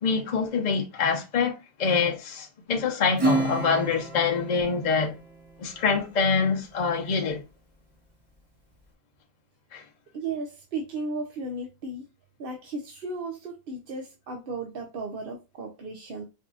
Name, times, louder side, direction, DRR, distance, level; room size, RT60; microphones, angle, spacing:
voice 1, 0.0-5.1 5.6-7.4 9.7-9.8, left 5 dB, 45° left, 0.8 m, -25 dB
Acoustic guitar / Strum, 3.2-6.1, right 2 dB, 25° right, 0.8 m, -30 dB
voice 2, 10.1-12.1 12.4-16.2, right 3 dB, 65° right, 0.9 m, -35 dB
4.6 x 2.6 x 2.4 m
omnidirectional pair, 1.1 m